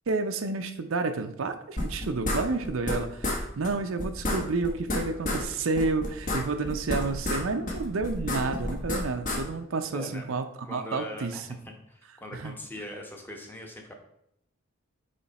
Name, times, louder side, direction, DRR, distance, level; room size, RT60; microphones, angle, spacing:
voice 1, 0.1-11.3 12.3-12.5, right 3 dB, 80° right, 6 dB, 0.6 m, -30 dB
sound 1, 1.8-3.0 3.2-3.4 3.6-3.7 4.0-5.4 5.8-7.4 7.7-9.4, left 1 dB, 40° left, 1.3 m, -30 dB
voice 2, 7.2-7.6 9.9-10.2 10.6-13.9, left 1 dB, 10° left, 1 dB, 1.0 m, -41 dB
8.7 x 3.2 x 4.1 m, 0.77 s
head